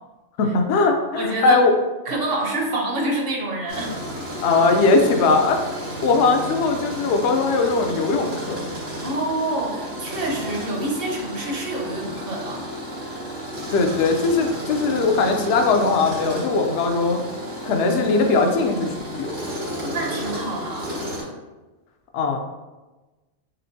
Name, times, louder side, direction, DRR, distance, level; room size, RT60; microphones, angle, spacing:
voice 1, 0.4-1.7 4.4-5.6 6.0-8.6 13.7-17.2 17.6-19.4 22.1-22.4, left 3 dB, 70° left, 4 dB, 0.8 m, -20 dB
voice 2, 1.1-1.6 2.1-4.0 9.0-12.6 19.8-21.0, right 1 dB, 55° right, 0 dB, 0.8 m, -27 dB
Tools, 3.7-21.2, equal, 90° right, 1.8 m, -32 dB
4.3 x 3.5 x 2.7 m, 1.2 s
omnidirectional pair, 1.3 m